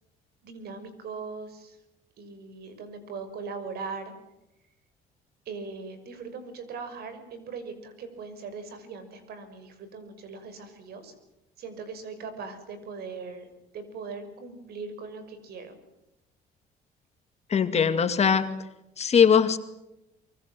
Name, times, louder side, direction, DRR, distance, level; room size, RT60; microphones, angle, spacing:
voice 1, 0.4-1.8 2.2-4.1 5.5-11.1 11.6-15.7, right 4 dB, 70° right, 10 dB, 6.0 m, -40 dB
voice 2, 17.5-18.5 19.0-19.6, left 7 dB, 40° left, 8 dB, 2.3 m, -20 dB
24.0 x 24.0 x 7.7 m, 0.89 s
cardioid pair, 110°, 17 cm